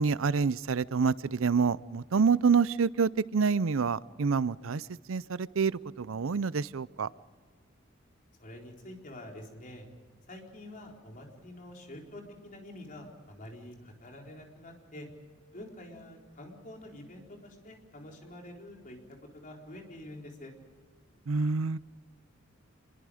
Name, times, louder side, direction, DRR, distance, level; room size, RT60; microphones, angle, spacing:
voice 1, 0.0-7.1 21.3-21.8, right 5 dB, 75° right, 19 dB, 0.5 m, -27 dB
voice 2, 8.4-9.9 10.3-15.1 15.5-19.0 19.3-20.5, left 1 dB, 40° left, 1 dB, 4.1 m, -47 dB
27.0 x 22.0 x 5.0 m, 1.5 s
head